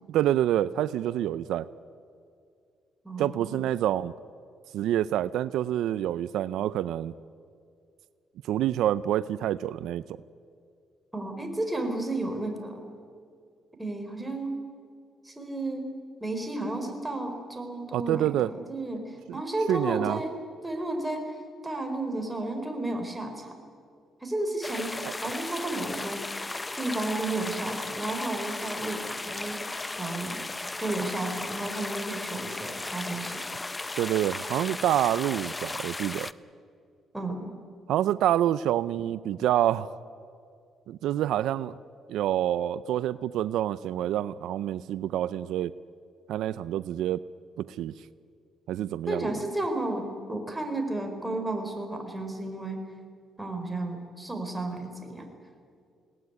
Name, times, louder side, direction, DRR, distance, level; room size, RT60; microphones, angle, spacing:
voice 1, 0.1-1.7 3.2-4.1 4.7-7.1 8.5-10.0 17.9-18.5 19.3-19.4 19.7-20.2 25.0-25.1 34.0-36.3 37.9-39.9 40.9-41.7 42.1-45.7 46.3-47.2 47.6-47.9 48.7-49.3, right 12 dB, 85° right, 16 dB, 0.5 m, -27 dB
voice 2, 3.0-3.6 11.1-12.8 13.8-14.5 15.2-15.9 16.2-20.3 20.6-21.2 21.6-23.5 24.2-26.2 26.7-30.4 30.8-33.4 37.1-37.5 49.1-52.8 53.4-55.3, right 2 dB, 10° right, 4 dB, 4.3 m, -32 dB
sound 1, 24.6-36.3, left 2 dB, 20° left, 0.7 m, -35 dB
21.5 x 18.5 x 9.6 m, 2.3 s
cardioid pair, 90°, 0 cm